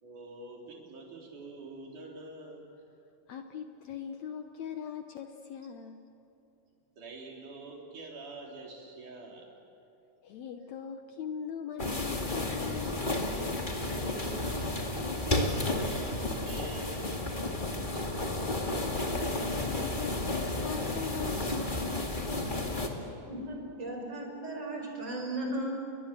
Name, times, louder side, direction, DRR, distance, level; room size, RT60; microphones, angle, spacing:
voice 1, 0.0-2.6 7.0-9.5 14.0-17.1 17.9-18.4, right 3 dB, 60° right, -1 dB, 5.1 m, -46 dB
voice 2, 3.3-6.0 10.2-13.1 19.7-22.8, left 7 dB, 65° left, 6 dB, 1.9 m, -41 dB
sound 1, 11.8-22.9, left 2 dB, 20° left, 1.7 m, -32 dB
voice 3, 23.2-25.7, right 1 dB, 20° right, 1 dB, 5.6 m, -36 dB
29.5 x 23.0 x 7.5 m, 2.8 s
omnidirectional pair, 4.0 m